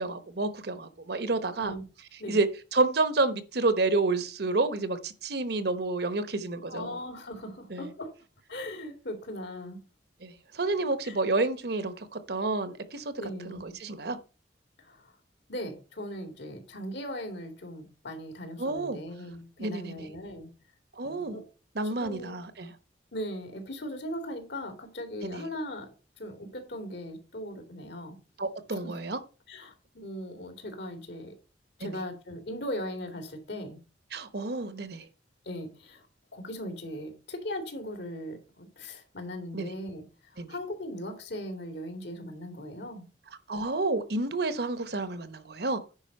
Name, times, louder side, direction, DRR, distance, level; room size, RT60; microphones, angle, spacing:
voice 1, 0.0-1.8 2.3-7.0 7.7-7.9 10.2-13.1 13.4-14.2 18.6-19.0 19.6-20.1 21.0-21.4 21.7-22.7 25.2-25.5 28.4-29.2 31.8-32.0 34.1-35.1 39.5-39.7 40.4-40.5 43.5-45.8, right 3 dB, 60° right, 1.0 m, -29 dB
voice 2, 6.7-8.1 8.5-9.8 11.0-11.2 13.2-13.8 14.8-15.1 15.5-20.5 21.0-21.4 21.8-22.3 23.1-25.9 26.2-28.2 28.8-28.9 29.5-31.3 31.8-33.8 35.4-36.1 36.3-40.0 40.3-43.1, left 1 dB, 70° left, 2.6 m, -39 dB
9.8 x 5.0 x 5.5 m
head